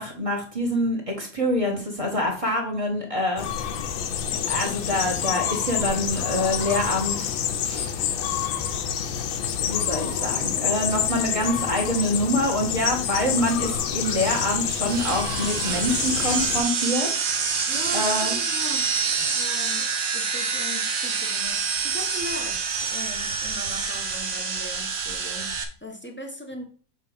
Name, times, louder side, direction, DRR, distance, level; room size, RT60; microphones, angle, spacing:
voice 1, 0.0-3.8 4.3-7.4 7.6-7.9 9.6-17.5 17.9-18.4, left 1 dB, 20° right, 0 dB, 1.5 m, -26 dB
sound 1, 3.4-16.6, left 8 dB, 85° left, 1.5 m, -28 dB
sound 2, 14.0-25.6, right 5 dB, 50° right, 1.2 m, -27 dB
voice 2, 17.7-18.9 19.3-26.6, left 1 dB, 15° left, 2 dB, 0.3 m, -39 dB
7.5 x 3.9 x 5.1 m, 0.41 s
omnidirectional pair, 2.1 m